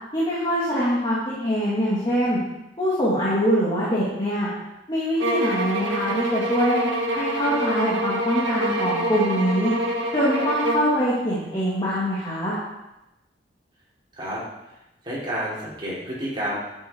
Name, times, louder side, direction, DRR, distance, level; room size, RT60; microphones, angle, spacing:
voice 1, 0.1-2.4 2.8-4.5 4.9-6.8 7.1-9.7 10.1-12.6, equal, 25° left, -8 dB, 2.7 m, -23 dB
sound 1, 5.2-11.0, right 1 dB, 80° right, 1.9 m, -26 dB
voice 2, 15.0-16.6, right 1 dB, 25° right, -7 dB, 4.4 m, -29 dB
12.0 x 8.6 x 4.9 m, 0.94 s
head